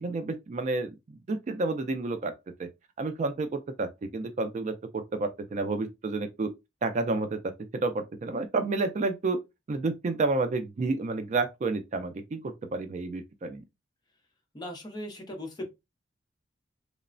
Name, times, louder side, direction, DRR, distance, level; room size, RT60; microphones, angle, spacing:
voice 1, 0.0-2.3 2.6-2.7 3.0-6.5 6.8-7.4 7.8-9.4 9.7-13.6, right 3 dB, 40° right, 0.3 m, -30 dB
voice 2, 14.5-15.7, left 1 dB, 20° left, 0.6 m, -38 dB
3.0 x 2.0 x 2.4 m
head